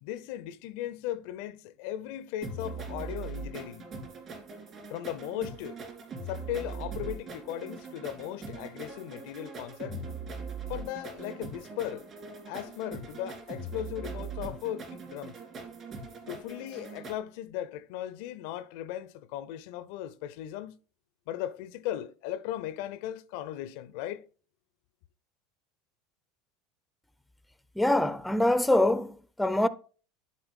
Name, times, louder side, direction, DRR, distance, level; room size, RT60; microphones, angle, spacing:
voice 1, 0.0-3.9 4.9-5.8 6.3-10.0 10.7-12.0 12.4-15.3 16.3-20.8 21.3-24.2, left 12 dB, 65° left, 0.5 m, -37 dB
sound 1, 2.4-17.2, right 3 dB, 40° right, 2.9 m, -41 dB
voice 2, 27.8-29.7, left 1 dB, 5° left, 0.5 m, -24 dB
11.5 x 4.3 x 3.6 m
hypercardioid pair, 80°, 0 cm